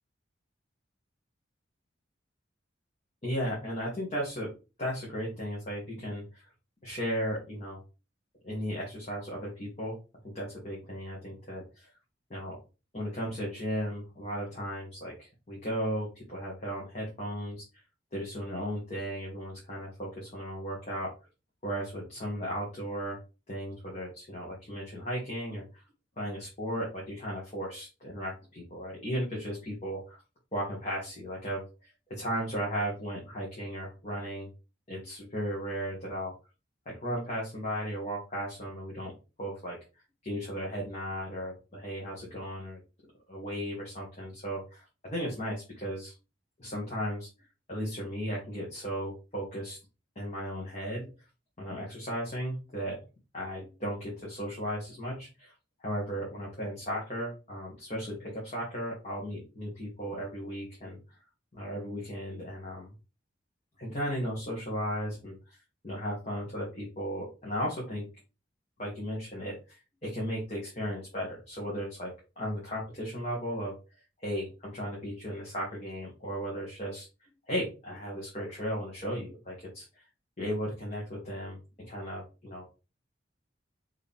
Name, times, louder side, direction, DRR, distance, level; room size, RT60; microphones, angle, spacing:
voice 1, 3.2-4.5 4.8-6.5 6.8-7.8 8.4-9.9 10.2-11.9 12.3-12.6 12.9-17.6 18.1-21.1 21.6-23.2 23.5-25.8 26.2-30.2 30.5-34.5 34.9-36.3 36.8-39.8 40.2-42.8 43.3-46.1 46.6-47.3 47.7-49.8 50.1-51.1 51.6-53.0 53.3-55.5 55.8-61.0 61.5-62.9 63.8-65.6 65.8-68.1 68.8-73.7 74.2-80.0 80.4-82.7, equal, 35° left, -4 dB, 1.5 m, -36 dB
4.6 x 3.1 x 3.6 m, 0.31 s
head